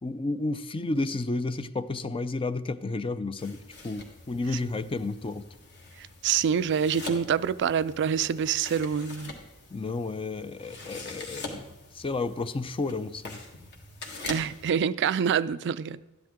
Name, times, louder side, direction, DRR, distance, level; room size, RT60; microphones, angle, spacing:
voice 1, 0.0-5.4 9.7-13.4, left 3 dB, 25° left, 0.4 m, -32 dB
sound 1, 3.4-14.7, left 3 dB, 50° left, 1.7 m, -44 dB
voice 2, 6.0-9.3 14.2-16.0, right 7 dB, 50° right, 0.3 m, -26 dB
13.0 x 10.5 x 3.7 m
head